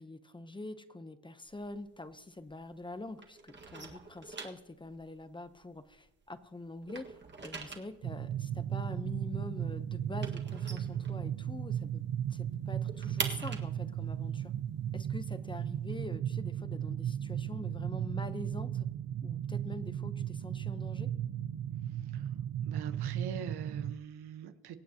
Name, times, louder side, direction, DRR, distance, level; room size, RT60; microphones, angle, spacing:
voice 1, 0.0-12.0 12.3-14.5 14.9-18.9 19.2-21.1, left 2 dB, 15° left, 0.7 m, -45 dB
sound 1, 1.4-2.9 3.2-6.4 6.7-11.7 12.0-12.1 12.4-16.1, right 4 dB, 30° right, 1.6 m, -44 dB
sound 2, 8.0-23.9, right 10 dB, 45° right, 0.5 m, -36 dB
voice 2, 21.8-22.3 22.6-24.8, right 8 dB, 85° right, 1.1 m, -43 dB
25.0 x 8.4 x 2.8 m
cardioid pair, 125°, 38 cm